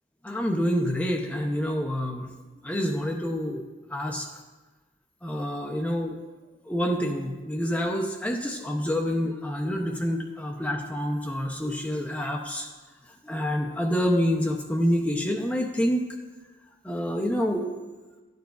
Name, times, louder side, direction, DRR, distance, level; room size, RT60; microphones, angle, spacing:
voice 1, 0.2-2.3 2.6-3.6 3.9-4.3 5.2-6.2 6.7-12.7 13.2-16.0 16.8-17.8, equal, 10° left, 1 dB, 0.5 m, -27 dB
11.5 x 9.1 x 2.3 m, 1.3 s
head